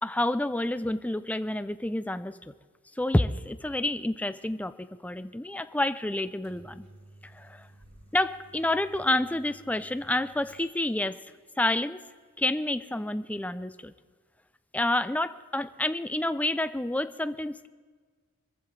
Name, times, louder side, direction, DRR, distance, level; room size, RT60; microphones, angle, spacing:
voice 1, 0.0-2.4 3.0-6.9 7.3-7.7 8.1-11.2 11.6-12.0 12.4-13.9 14.7-17.7, left 1 dB, 5° left, 12 dB, 0.5 m, -29 dB
Microwave oven, 6.2-11.0, right 1 dB, 75° right, 4.2 m, -55 dB
24.0 x 15.0 x 3.3 m, 1.5 s
head